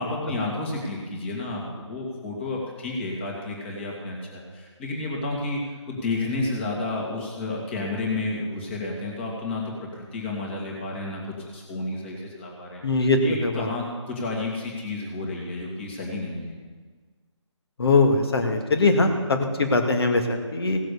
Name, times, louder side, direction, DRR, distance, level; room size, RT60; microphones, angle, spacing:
voice 1, 0.0-5.6 5.9-9.6 10.1-12.8 13.2-16.5 19.0-19.2, left 2 dB, 25° left, -1 dB, 2.5 m, -31 dB
voice 2, 12.8-13.7 17.8-20.8, left 3 dB, 50° left, 5 dB, 1.9 m, -21 dB
17.0 x 7.4 x 7.0 m, 1.5 s
figure-of-eight pair, 165°, 16 cm